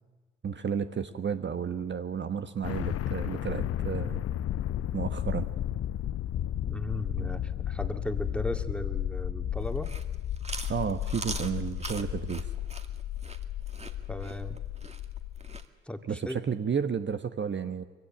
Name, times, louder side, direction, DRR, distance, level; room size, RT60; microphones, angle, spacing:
voice 1, 0.4-4.3 4.9-5.5 7.2-7.3 10.7-12.5 16.1-17.8, right 7 dB, 35° right, 9 dB, 1.2 m, -32 dB
sound 1, 2.6-15.7, left 11 dB, 50° left, 0.7 m, -33 dB
voice 2, 6.7-9.9 14.1-14.6 15.8-16.4, left 1 dB, 5° left, 7 dB, 2.1 m, -36 dB
Chewing mastication, 9.6-15.7, right 3 dB, 20° right, 2.2 m, -41 dB
23.5 x 16.0 x 9.0 m, 1.4 s
hypercardioid pair, 50°, 31 cm